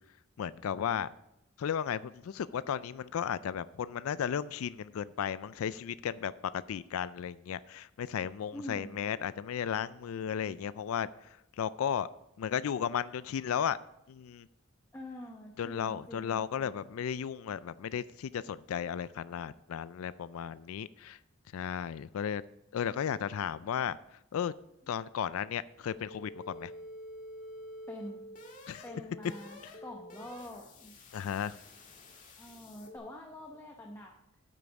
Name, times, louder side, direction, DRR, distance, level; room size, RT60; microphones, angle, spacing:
voice 1, 0.4-1.1 1.6-11.1 11.6-12.1 12.4-13.8 14.1-14.5 15.6-21.2 21.5-22.4 22.7-24.0 24.3-24.5 24.9-26.7 28.7-28.8 31.1-31.5, left 8 dB, 85° left, 17 dB, 0.3 m, -34 dB
voice 2, 8.5-9.0 14.9-16.8 27.9-28.2 28.8-31.0 32.4-34.2, left 1 dB, 10° left, 0 dB, 0.8 m, -46 dB
sound 1, 25.9-33.0, left 1 dB, 35° left, 1.8 m, -48 dB
9.2 x 8.5 x 4.8 m, 0.81 s
head